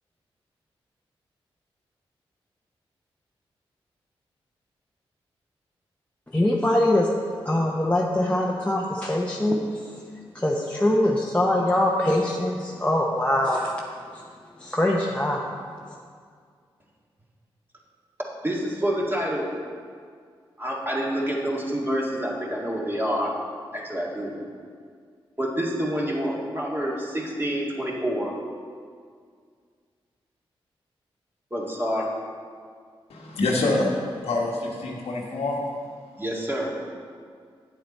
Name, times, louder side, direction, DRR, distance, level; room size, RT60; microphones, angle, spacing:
voice 1, 6.3-7.1 7.4-9.6 10.3-13.7 14.6-15.4, left 1 dB, 10° left, -3 dB, 0.9 m, -23 dB
voice 2, 18.4-19.5 20.6-23.4 23.7-24.3 25.4-28.3 31.5-32.1 36.2-36.7, equal, 20° right, -3 dB, 1.9 m, -27 dB
voice 3, 33.1-33.9 34.2-35.6, left 2 dB, 85° left, -2 dB, 1.3 m, -25 dB
8.4 x 7.7 x 4.2 m, 2.1 s
cardioid pair, 45°, 10 cm